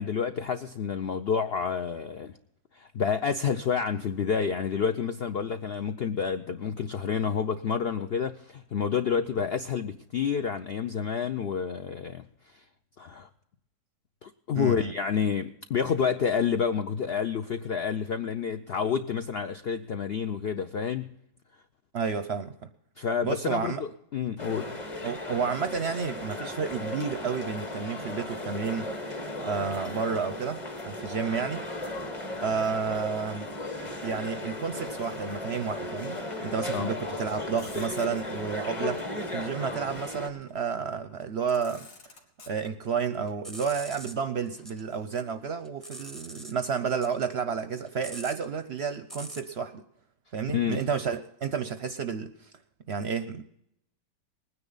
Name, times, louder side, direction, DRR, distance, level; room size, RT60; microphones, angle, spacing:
voice 1, 0.0-2.3 2.7-12.6 13.0-13.3 14.2-21.1 23.0-24.7 36.7-36.9 50.5-50.9, left 6 dB, 65° left, 8 dB, 0.6 m, -29 dB
voice 2, 14.5-14.9 21.9-22.5 23.2-23.8 25.0-30.6 30.9-31.6 32.4-33.5 34.0-41.9 42.5-49.8 50.3-52.5 52.9-53.4, right 6 dB, 55° right, 10 dB, 0.7 m, -31 dB
sound 1, 24.4-40.3, left 2 dB, 20° left, 1.2 m, -36 dB
Motor vehicle (road), 31.9-33.5 33.8-34.9 35.8-36.1 36.5-37.0 37.4-38.4 39.6-40.7 41.2-41.3 41.5-43.0 43.9-45.5, left 4 dB, 80° left, 2.3 m, -54 dB
sound 2, 43.3-44.8 45.2-46.6 46.9-49.6, right 1 dB, ahead, 0.9 m, -44 dB
20.0 x 9.8 x 3.9 m, 0.76 s
omnidirectional pair, 1.7 m